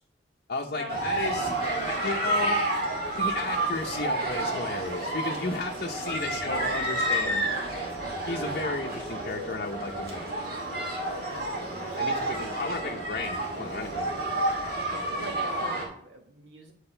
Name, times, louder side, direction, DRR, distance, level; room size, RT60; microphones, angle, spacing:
voice 1, 0.5-1.5 1.8-2.6 3.2-7.4 8.3-10.6 12.0-14.1, left 3 dB, 55° left, 0 dB, 0.7 m, -34 dB
sound 1, 0.9-15.8, right 1 dB, 55° right, 2.1 m, -30 dB
voice 2, 1.6-2.4 6.0-6.8 7.2-7.5 8.5-8.9 11.2-12.9 14.0-14.3 14.9-16.7, right 1 dB, 75° right, 3 dB, 1.4 m, -43 dB
sound 2, 3.0-15.7, right 3 dB, 10° right, 3.3 m, -54 dB
8.8 x 4.9 x 4.4 m, 0.64 s
head